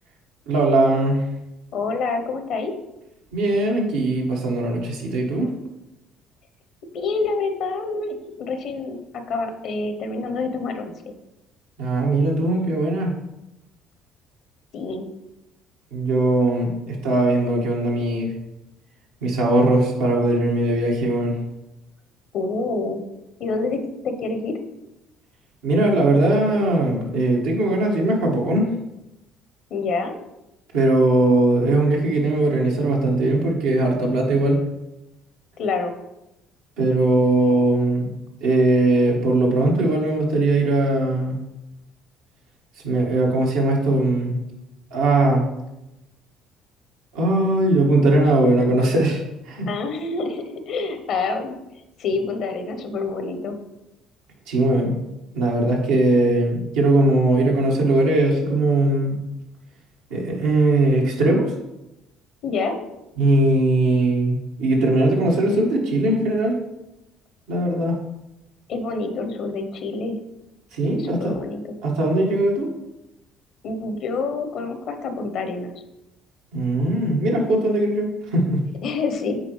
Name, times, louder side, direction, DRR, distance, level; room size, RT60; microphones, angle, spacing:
voice 1, 0.5-1.3 3.3-5.5 11.8-13.1 15.9-18.3 19.2-21.3 25.6-28.7 30.7-34.6 36.8-38.1 38.4-41.4 42.8-44.4 44.9-45.4 47.1-49.7 54.5-55.0 55.3-59.2 60.1-61.5 63.2-66.5 67.5-68.0 70.7-71.2 71.8-72.7 76.5-78.6, right 2 dB, 85° right, -2 dB, 1.6 m, -20 dB
voice 2, 1.7-2.7 6.9-10.9 14.7-15.1 22.3-23.0 23.4-24.6 29.7-30.1 35.6-36.0 49.7-51.5 52.0-53.6 62.4-62.8 68.7-70.2 70.9-71.6 73.6-75.7 78.8-79.4, left 3 dB, 65° left, 7 dB, 0.8 m, -27 dB
8.4 x 4.1 x 3.1 m, 0.93 s
supercardioid pair, 70°, 0 cm